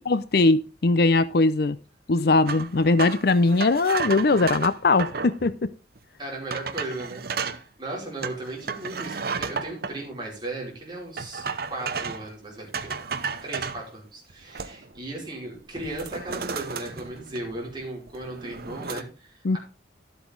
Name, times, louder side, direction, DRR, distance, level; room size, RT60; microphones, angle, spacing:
voice 1, 0.0-1.8 2.1-5.7 19.4-19.6, left 3 dB, 60° left, 0.6 m, -20 dB
sound 1, 2.5-5.4 6.0-6.1 6.5-7.6 8.2-9.9 11.2-12.3 12.7-13.8 14.3-15.0 15.3-15.5 15.8-17.7 18.1-19.0, right 5 dB, 55° right, 0.8 m, -33 dB
voice 2, 6.2-13.0 13.4-19.6, right 2 dB, 25° right, 5.2 m, -36 dB
12.5 x 8.1 x 3.9 m
head